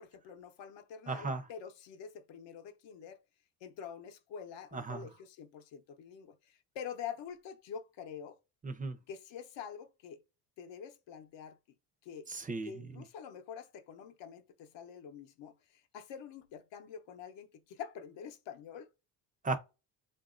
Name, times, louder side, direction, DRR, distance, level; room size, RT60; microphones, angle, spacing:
voice 1, 0.0-3.2 3.6-8.4 9.1-10.2 10.6-11.6 12.0-12.2 12.6-15.5 15.9-18.9, left 8 dB, 60° left, 0.8 m, -46 dB
voice 2, 1.1-1.4 4.7-5.1 8.6-9.0 12.3-12.9 19.4-19.6, right 3 dB, 15° right, 0.6 m, -36 dB
3.5 x 2.6 x 2.5 m
supercardioid pair, 70°, 49 cm